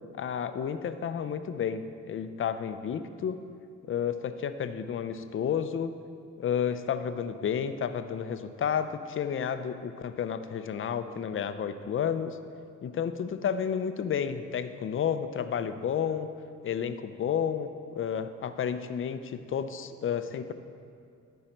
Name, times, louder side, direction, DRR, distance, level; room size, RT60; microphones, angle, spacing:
voice 1, 0.2-1.8 2.1-3.4 3.9-5.9 6.4-12.4 12.8-16.3 16.6-20.5, left 8 dB, 45° left, 10 dB, 0.6 m, -31 dB
13.0 x 5.5 x 4.4 m, 2.3 s
cardioid pair, 90°, 30 cm